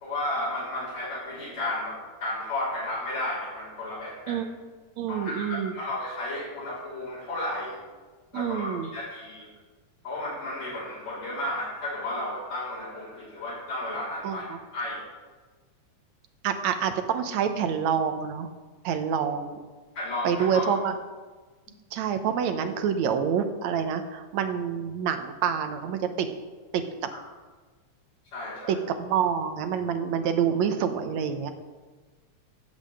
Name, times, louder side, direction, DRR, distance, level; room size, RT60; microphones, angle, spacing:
voice 1, 0.0-4.4 5.1-7.8 8.3-9.5 10.0-15.0 19.9-20.7 28.3-28.8, left 1 dB, 65° left, -10 dB, 4.6 m, -33 dB
voice 2, 5.0-5.7 8.3-8.9 14.2-14.4 16.4-18.5 18.8-19.6 20.2-20.9 21.9-26.3 26.7-26.8 28.7-31.5, right 7 dB, 75° right, 8 dB, 2.2 m, -27 dB
15.5 x 5.7 x 7.7 m, 1.3 s
omnidirectional pair, 3.3 m